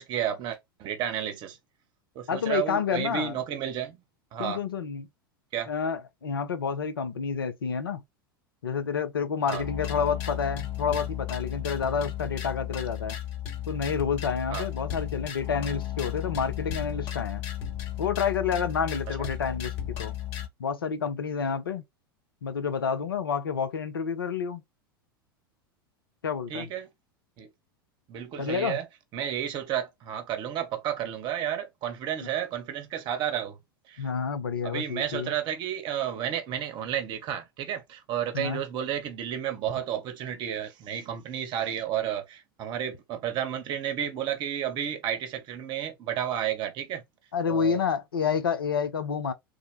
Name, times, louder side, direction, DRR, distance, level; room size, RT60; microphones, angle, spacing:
voice 1, 0.0-1.6 2.1-4.0 4.3-4.6 5.5-5.7 9.5-9.6 14.5-14.7 19.2-19.3 26.5-26.9 27.4-27.5 28.1-28.9 29.1-33.6 33.9-34.1 34.6-47.0 47.5-47.8, right 10 dB, 40° right, 0.9 m, -32 dB
voice 2, 2.3-3.4 4.4-5.1 5.7-8.0 8.6-13.2 13.7-17.4 18.0-19.7 20.0-20.2 20.6-21.8 22.4-24.6 26.2-26.7 28.4-28.8 32.2-32.3 34.0-35.3 38.3-38.6 47.3-49.3, left 6 dB, 75° left, 0.6 m, -29 dB
sound 1, 9.5-20.5, left 11 dB, 45° left, 1.0 m, -34 dB
3.5 x 2.2 x 3.2 m
figure-of-eight pair, 85°, 12 cm